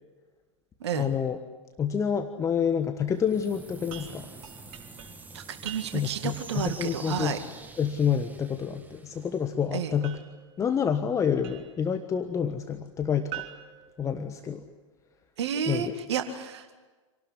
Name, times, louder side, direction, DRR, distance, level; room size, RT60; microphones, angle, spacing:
voice 1, 0.9-1.4 1.8-4.3 5.9-7.3 7.8-10.2 10.6-13.4 14.0-14.6 15.7-15.9, left 7 dB, 20° left, 8 dB, 1.3 m, -28 dB
sound 1, 3.1-10.0, right 3 dB, 10° right, 1.7 m, -47 dB
sound 2, 3.9-6.3 10.0-11.9 13.3-14.8, right 12 dB, 45° right, 3.5 m, -45 dB
voice 2, 5.3-7.4 9.7-10.0 15.4-16.9, right 8 dB, 60° right, 7 dB, 2.0 m, -31 dB
27.0 x 18.5 x 9.9 m, 1.3 s
figure-of-eight pair, 95°, 16 cm